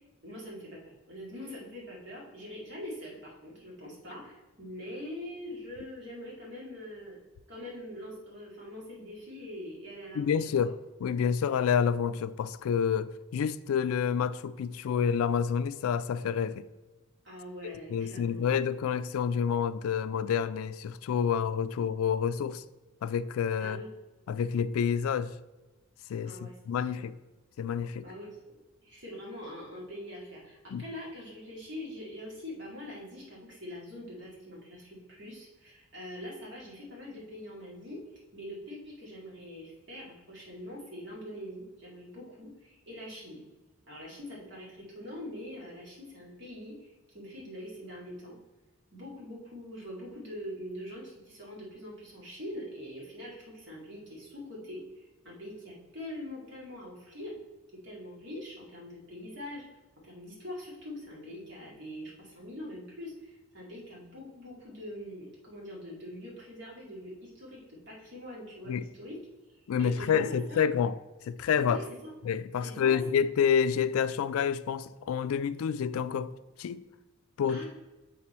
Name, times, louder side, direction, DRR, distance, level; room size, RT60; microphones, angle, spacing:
voice 1, 0.2-7.2 7.5-10.4 17.2-18.5 23.6-23.9 26.2-27.0 28.0-28.3 28.8-43.5 43.9-48.4 48.9-57.4 57.8-59.6 60.0-69.2 69.8-70.6 71.6-72.1 72.6-73.0 77.5-77.7, left 1 dB, 55° right, 2.2 m, -43 dB
voice 2, 10.1-10.7 11.0-16.6 17.6-22.6 23.0-23.8 24.3-25.3 26.1-27.1 27.6-28.0 30.7-30.8 68.7-68.8 69.7-71.0 71.3-71.8 72.2-76.3 76.6-76.8 77.4-77.6, left 7 dB, 85° left, 0.3 m, -28 dB
7.4 x 4.2 x 4.2 m
head